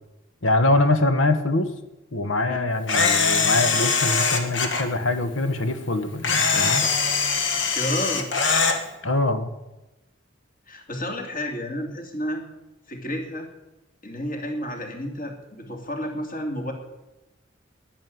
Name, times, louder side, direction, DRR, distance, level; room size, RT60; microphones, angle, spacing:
voice 1, 0.4-1.7 2.1-6.9 9.0-9.5, left 2 dB, 85° left, 10 dB, 1.4 m, -23 dB
Camera, 2.9-4.8 6.2-8.8, left 5 dB, 65° left, 1.8 m, -22 dB
voice 2, 7.7-8.3 10.7-12.5 12.9-13.5 14.0-16.7, equal, 45° left, 3 dB, 2.8 m, -31 dB
11.0 x 10.5 x 9.4 m, 1.0 s
head